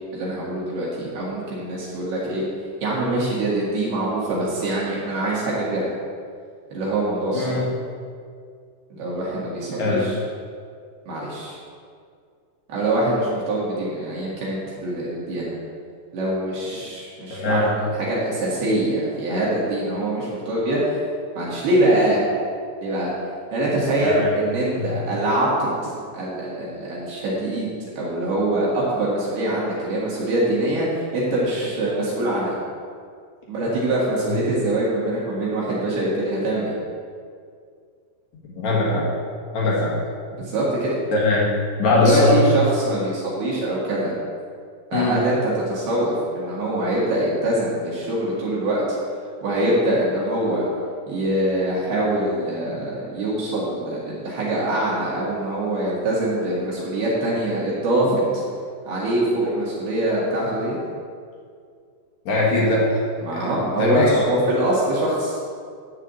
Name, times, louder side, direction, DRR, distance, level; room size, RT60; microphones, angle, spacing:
voice 1, 0.1-2.4 2.8-5.9 6.7-7.6 8.9-10.2 11.1-11.6 12.7-15.5 16.1-17.7 18.0-20.9 21.4-22.2 22.8-23.1 23.5-30.9 31.1-32.6 33.5-36.7 40.3-40.9 42.0-44.1 44.9-48.8 49.4-50.6 51.1-58.5 58.8-60.8 63.2-65.4, right 1 dB, 60° right, -6 dB, 3.3 m, -23 dB
voice 2, 7.3-7.7 9.8-10.1 17.3-17.7 24.0-24.3 24.8-25.0 38.5-39.1 39.5-40.0 41.1-41.5 41.8-42.4 44.9-45.2 62.2-63.0 63.3-64.2, left 2 dB, 75° left, -5 dB, 1.7 m, -21 dB
11.0 x 4.9 x 8.2 m, 2.2 s
omnidirectional pair, 5.8 m